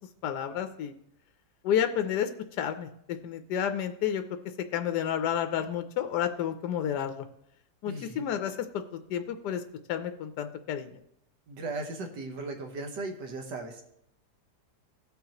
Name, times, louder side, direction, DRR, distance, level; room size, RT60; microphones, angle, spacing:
voice 1, 0.2-0.9 1.6-2.3 2.6-4.2 4.7-7.3 7.8-9.6 9.9-11.0, left 9 dB, 85° left, 8 dB, 1.2 m, -30 dB
voice 2, 7.9-8.3 11.5-13.8, right 2 dB, 85° right, 4 dB, 1.7 m, -37 dB
17.0 x 5.6 x 2.9 m, 0.76 s
omnidirectional pair, 1.8 m